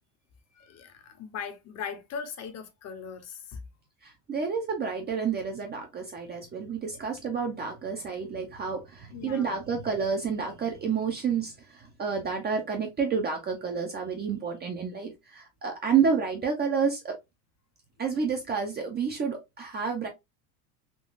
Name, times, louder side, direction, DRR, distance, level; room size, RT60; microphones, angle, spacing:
voice 1, 0.6-3.6 9.1-9.5, left 6 dB, 35° left, 0.8 m, -39 dB
voice 2, 4.0-17.1 18.0-20.1, right 6 dB, 20° right, 0.6 m, -29 dB
3.7 x 2.4 x 2.4 m
supercardioid pair, 130°, 45 cm